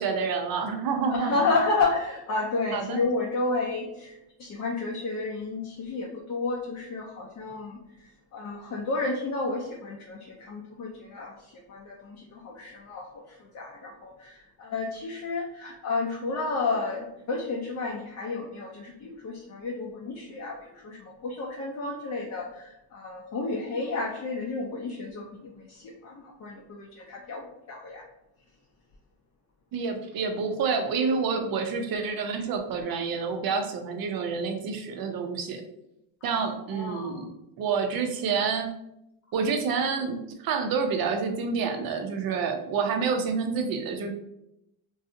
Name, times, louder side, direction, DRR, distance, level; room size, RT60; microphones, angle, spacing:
voice 1, 0.0-1.3 2.7-3.0 29.7-35.6 36.2-38.7 39.3-44.1, right 5 dB, 50° right, 5 dB, 0.6 m, -28 dB
voice 2, 1.1-28.0 36.3-37.2, left 3 dB, 40° left, -1 dB, 0.6 m, -32 dB
2.6 x 2.3 x 2.5 m, 0.83 s
supercardioid pair, 80°, 46 cm